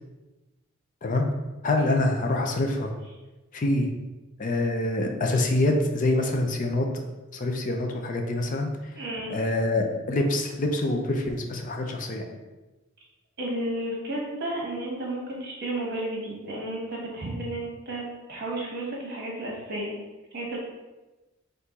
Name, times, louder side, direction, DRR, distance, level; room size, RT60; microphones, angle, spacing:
voice 1, 1.6-2.9 3.5-3.9 4.4-7.0 7.3-8.7 9.3-12.3, left 2 dB, 40° left, 3 dB, 0.5 m, -25 dB
voice 2, 8.9-9.3 13.4-19.9 20.3-20.6, right 1 dB, 50° right, -2 dB, 1.3 m, -32 dB
4.4 x 2.6 x 3.9 m, 1.1 s
head